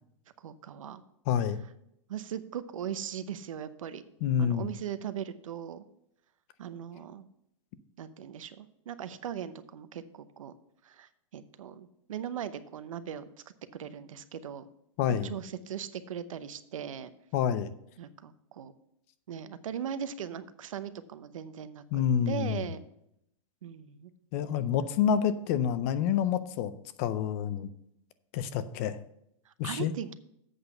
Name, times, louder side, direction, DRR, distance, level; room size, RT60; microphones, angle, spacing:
voice 1, 0.4-1.0 2.1-4.0 4.4-5.8 6.6-7.3 8.0-10.5 10.8-13.2 13.7-14.7 15.1-17.1 18.0-18.7 19.3-22.8 23.6-24.1 29.5-30.1, right 9 dB, 90° right, 13 dB, 0.8 m, -39 dB
voice 2, 1.3-1.6 4.2-4.7 15.0-15.3 17.3-17.7 21.9-22.6 24.3-26.7 27.0-27.7 28.3-29.0 29.6-29.9, left 8 dB, 25° left, 13 dB, 0.4 m, -28 dB
8.0 x 6.1 x 6.5 m, 0.77 s
supercardioid pair, 175°, 17 cm